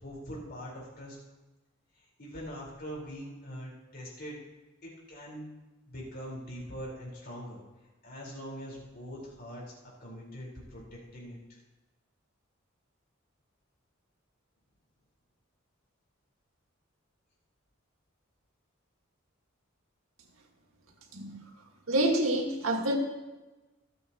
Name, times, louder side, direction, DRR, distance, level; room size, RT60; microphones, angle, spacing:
voice 1, 0.0-1.2 2.0-4.4 4.8-5.5 5.9-7.6 8.0-9.7 10.0-11.4, equal, 50° left, -4 dB, 4.7 m, -42 dB
voice 2, 21.1-21.4 21.9-23.0, right 1 dB, 85° right, 2 dB, 2.0 m, -27 dB
25.5 x 8.9 x 3.1 m, 1.1 s
head